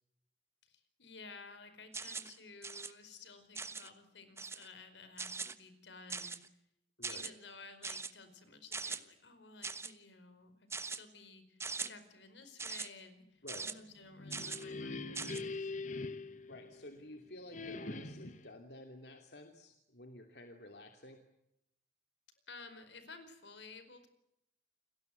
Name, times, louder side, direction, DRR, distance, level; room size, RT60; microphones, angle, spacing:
voice 1, 0.7-6.4 7.0-15.7 22.5-24.1, left 4 dB, 80° left, 10 dB, 4.9 m, -54 dB
sound 1, 1.9-2.3 2.6-2.9 3.5-3.9 4.4-4.7 5.2-5.5 6.1-6.5 7.0-7.3 7.8-8.1 8.7-9.0 9.6-9.9 10.7-11.0 11.6-11.9 12.6-12.9 13.5-13.7 14.3-14.6 15.1-15.4, right 4 dB, 15° right, 1.2 m, -41 dB
voice 2, 7.0-7.3 13.4-13.7 16.5-21.2, left 1 dB, 65° left, 5 dB, 2.9 m, -52 dB
sound 2, 14.0-17.1 17.5-18.5, left 3 dB, 40° left, 1.4 m, -43 dB
30.0 x 22.0 x 8.0 m, 0.81 s
head